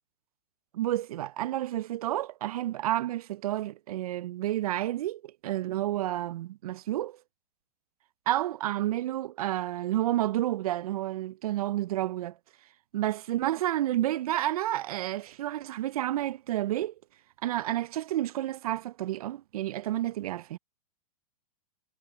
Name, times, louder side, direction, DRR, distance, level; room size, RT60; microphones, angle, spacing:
voice 1, 0.7-7.2 8.3-12.3 12.9-16.9 17.4-20.6, right 14 dB, 75° right, 0.5 m, -30 dB
hypercardioid pair, 135°, 19 cm